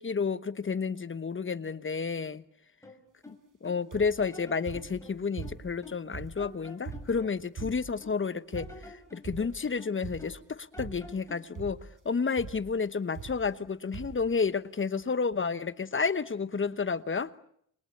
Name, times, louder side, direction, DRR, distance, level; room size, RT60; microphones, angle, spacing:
voice 1, 0.0-2.4 3.3-3.4 3.6-11.8 12.0-17.3, left 5 dB, 35° left, 14 dB, 1.1 m, -31 dB
sound 1, 2.8-3.8 4.2-6.1 6.4-8.2 8.5-10.5 10.7-11.5, left 2 dB, 10° left, 5.8 m, -50 dB
sound 2, 3.9-4.3 4.7-5.8 6.1-8.1 8.5-8.9 9.2-9.7 10.0-10.4 10.8-11.3 11.5-12.0 12.4-12.7 13.1-13.7 13.9-14.3 15.0-15.1 15.3-15.4, right 5 dB, 55° right, 4.4 m, -43 dB
29.0 x 22.5 x 8.6 m, 0.70 s
cardioid pair, 85°, 37 cm